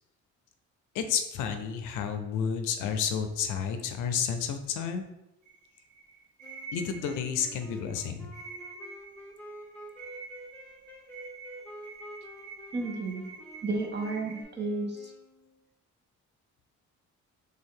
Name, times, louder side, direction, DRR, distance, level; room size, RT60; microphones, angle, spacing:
voice 1, 0.9-5.1 6.7-8.3, left 7 dB, 85° left, 7 dB, 0.5 m, -31 dB
sound 1, 5.4-14.4, right 4 dB, 75° right, 0.8 m, -47 dB
sound 2, 6.4-15.6, equal, 5° left, 0.9 m, -49 dB
voice 2, 12.7-13.2 13.6-15.1, right 3 dB, 35° right, 2 dB, 0.8 m, -32 dB
3.4 x 2.6 x 3.7 m, 0.90 s
cardioid pair, 90°, 30 cm